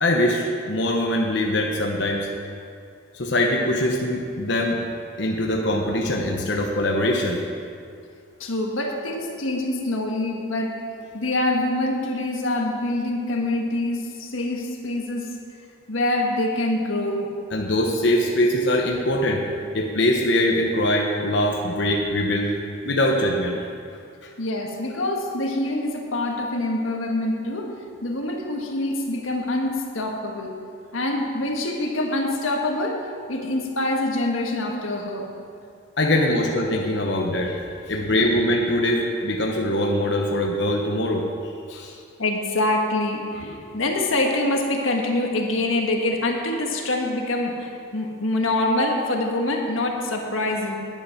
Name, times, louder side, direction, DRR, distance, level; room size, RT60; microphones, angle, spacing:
voice 1, 0.0-2.3 3.1-4.8 5.2-7.4 17.5-19.5 19.7-22.6 22.8-23.6 24.2-24.3 36.0-37.6 37.9-41.3 41.7-42.0, left 1 dB, 60° left, 0 dB, 1.0 m, -22 dB
voice 2, 8.4-10.8 11.1-15.3 15.9-17.3 24.4-27.7 28.0-30.6 30.9-33.0 33.3-35.3 37.9-38.4 42.2-50.8, left 1 dB, 85° left, 1 dB, 1.6 m, -25 dB
10.5 x 10.0 x 5.9 m, 2.4 s
head